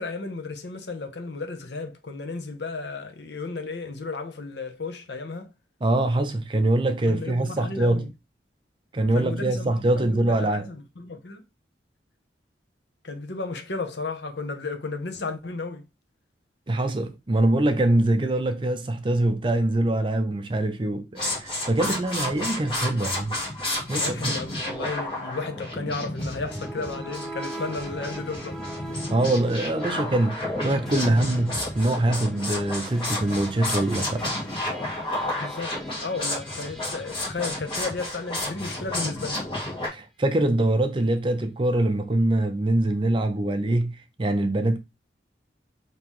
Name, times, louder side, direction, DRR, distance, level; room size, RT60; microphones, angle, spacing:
voice 1, 0.0-5.5 7.1-8.1 9.1-11.4 13.0-15.8 23.9-28.6 35.4-39.5, left 3 dB, 75° left, 0.8 m, -34 dB
voice 2, 5.8-8.1 8.9-10.7 16.7-23.4 23.9-24.4 29.1-34.4 39.9-44.8, right 1 dB, 30° right, 0.4 m, -24 dB
sound 1, 21.2-39.9, left 1 dB, 30° left, 1.8 m, -31 dB
sound 2, 26.2-38.5, right 1 dB, 5° left, 0.8 m, -42 dB
5.4 x 2.9 x 3.1 m
head